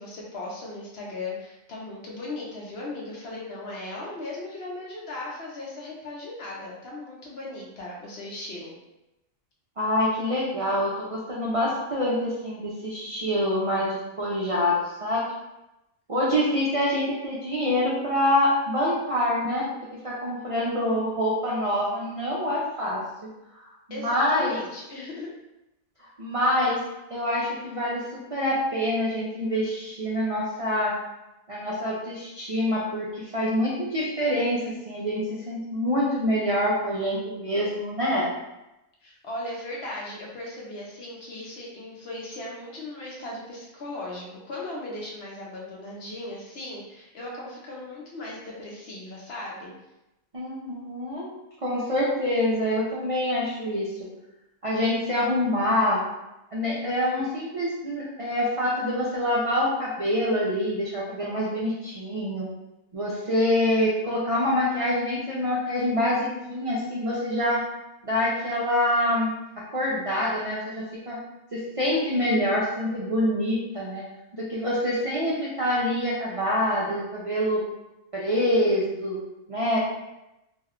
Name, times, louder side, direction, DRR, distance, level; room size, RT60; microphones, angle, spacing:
voice 1, 0.0-8.7 23.9-25.3 39.0-49.7, left 2 dB, 55° left, -4 dB, 0.9 m, -37 dB
voice 2, 9.8-14.7 15.0-15.2 16.1-19.7 20.0-23.3 23.9-24.6 26.2-26.8 27.1-30.9 31.5-38.3 50.3-51.3 51.6-54.1 54.6-56.0 56.5-62.5 62.9-67.6 68.0-71.2 71.5-74.0 74.3-77.6 78.1-79.2 79.5-79.8, left 1 dB, 55° right, -6 dB, 0.3 m, -26 dB
2.7 x 2.2 x 3.6 m, 0.93 s
omnidirectional pair, 1.4 m